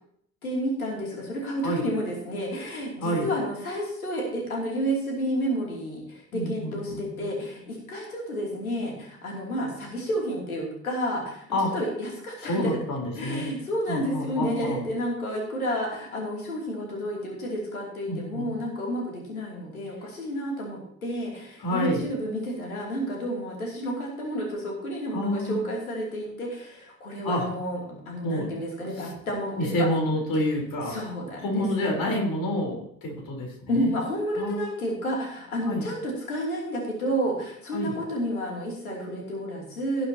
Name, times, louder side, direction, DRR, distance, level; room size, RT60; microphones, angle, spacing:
voice 1, 0.4-11.4 11.7-12.8 13.2-29.9 30.9-31.6 33.7-40.1, equal, 90° left, -1 dB, 3.0 m, -30 dB
voice 2, 6.3-7.3 11.5-11.7 12.4-13.5 13.9-14.8 18.1-18.5 21.6-22.0 25.1-25.6 27.2-27.5 28.2-28.5 28.9-29.1 29.6-30.9 31.4-33.9 34.3-34.6 35.7-35.9 37.7-38.0, equal, 55° left, 0 dB, 4.1 m, -28 dB
18.0 x 7.8 x 2.9 m, 0.66 s
figure-of-eight pair, 55°, 42 cm